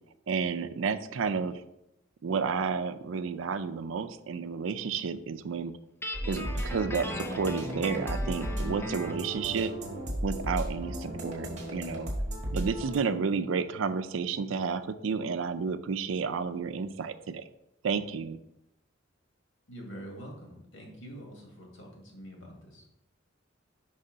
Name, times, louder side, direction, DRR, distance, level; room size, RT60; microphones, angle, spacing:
voice 1, 0.3-1.6 2.2-5.7 6.3-9.7 10.2-12.1 12.5-17.4 17.8-18.4, right 5 dB, 90° right, 12 dB, 0.4 m, -31 dB
Guitar, 6.0-9.3, left 1 dB, 10° left, 0.6 m, -38 dB
sound 1, 6.1-13.0, right 1 dB, 40° right, 1.5 m, -35 dB
voice 2, 19.7-22.8, equal, 85° left, 0 dB, 1.8 m, -45 dB
5.4 x 5.4 x 3.9 m, 0.86 s
head